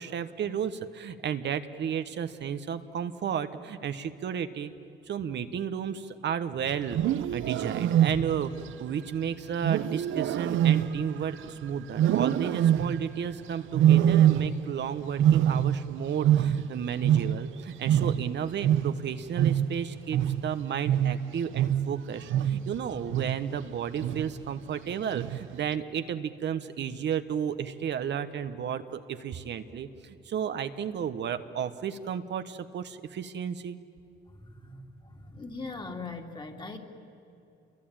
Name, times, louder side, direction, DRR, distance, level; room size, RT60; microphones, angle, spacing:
voice 1, 0.0-4.7 5.1-33.8, right 8 dB, 60° right, 9 dB, 1.2 m, -33 dB
Wild animals, 6.8-8.5 9.6-11.5 11.9-13.1 13.7-14.8 15.1-17.6 17.8-22.7 23.1-23.6 24.0-24.4 25.1-25.6, right 10 dB, 80° right, 0.9 m, -24 dB
voice 2, 22.9-23.2 34.3-36.8, left 3 dB, 25° left, 3 dB, 3.0 m, -41 dB
28.0 x 23.0 x 9.1 m, 2.7 s
cardioid pair, 90°, 20 cm